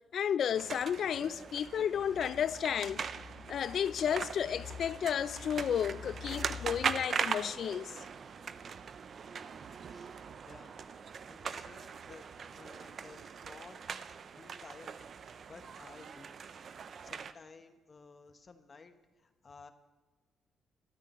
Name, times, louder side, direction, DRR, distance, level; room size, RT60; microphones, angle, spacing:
voice 1, 0.1-3.1 3.5-8.0, left 8 dB, 60° left, 0.4 m, -32 dB
sound 1, 0.6-17.3, right 6 dB, 50° right, 0.5 m, -41 dB
voice 2, 10.4-10.8 11.3-14.9 15.5-16.4 17.0-18.9 19.2-19.7, left 4 dB, 35° left, 0.9 m, -55 dB
21.0 x 13.0 x 3.0 m
cardioid pair, 100°, 0 cm